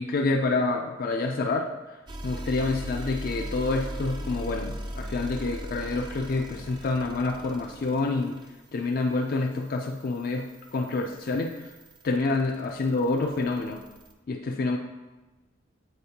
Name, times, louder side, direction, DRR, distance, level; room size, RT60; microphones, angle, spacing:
voice 1, 0.0-1.7 2.2-8.4 8.7-11.7 12.0-13.8 14.3-14.8, left 3 dB, 45° left, 3 dB, 0.3 m, -27 dB
sound 1, 2.1-14.1, equal, 20° right, 0.4 m, -40 dB
7.9 x 4.3 x 2.8 m, 1.1 s
head